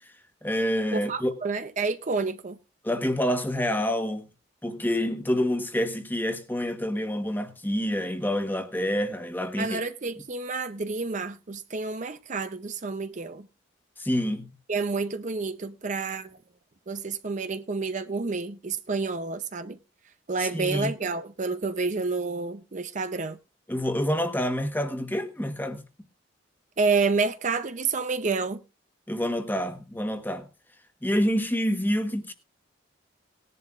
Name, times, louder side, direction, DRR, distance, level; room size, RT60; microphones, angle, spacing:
voice 1, 0.4-1.3 2.8-4.3 4.6-9.8 14.0-14.5 20.4-20.9 23.7-25.8 29.1-30.5 31.0-32.3, equal, 10° left, 1.2 m, -27 dB
voice 2, 0.9-2.6 9.6-13.5 14.7-16.4 16.9-19.8 20.3-23.4 26.8-28.6, right 4 dB, 40° right, 0.6 m, -29 dB
19.0 x 11.0 x 2.5 m
head